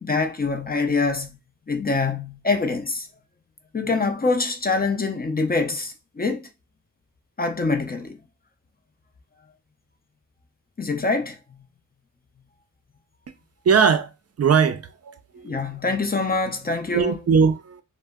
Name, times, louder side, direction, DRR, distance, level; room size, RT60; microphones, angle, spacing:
voice 1, 0.0-1.4 1.7-3.1 3.7-6.5 7.4-8.2 10.8-11.4 15.4-17.2, left 3 dB, 30° left, 0.4 m, -24 dB
voice 2, 13.7-14.1 14.4-15.5 16.9-17.8, right 6 dB, 50° right, 0.4 m, -20 dB
2.1 x 2.0 x 3.4 m
cardioid pair, 55°, 33 cm